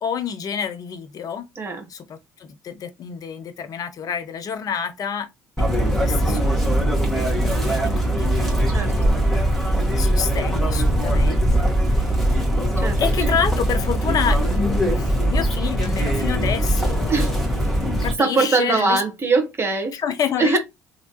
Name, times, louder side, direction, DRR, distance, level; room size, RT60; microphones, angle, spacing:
voice 1, 0.0-1.5 1.9-5.3 5.6-5.7 5.9-9.1 10.0-12.4 13.0-17.4 18.0-19.0 19.9-20.6, left 7 dB, 45° left, 0.7 m, -28 dB
voice 2, 1.5-1.9 8.7-9.2 12.8-13.0 13.3-13.4 17.1-17.3 18.2-19.9 20.4-20.6, right 3 dB, 30° right, 1.2 m, -21 dB
Chirp tweet, 5.6-18.1, right 1 dB, 5° left, 1.6 m, -21 dB
3.1 x 2.7 x 2.9 m
hypercardioid pair, 60°, 8 cm